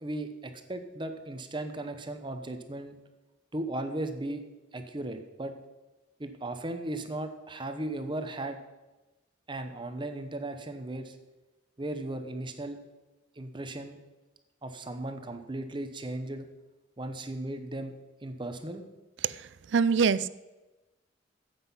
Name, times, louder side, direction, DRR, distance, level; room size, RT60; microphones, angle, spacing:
voice 1, 0.0-3.0 3.5-4.4 4.7-5.5 6.2-8.6 9.5-11.2 11.8-12.8 13.4-14.0 14.6-16.5 17.0-17.9 18.2-18.8, right 1 dB, 25° right, 8 dB, 0.8 m, -36 dB
voice 2, 19.2-20.3, right 6 dB, 65° right, 17 dB, 0.4 m, -25 dB
9.9 x 7.9 x 5.6 m, 1.1 s
head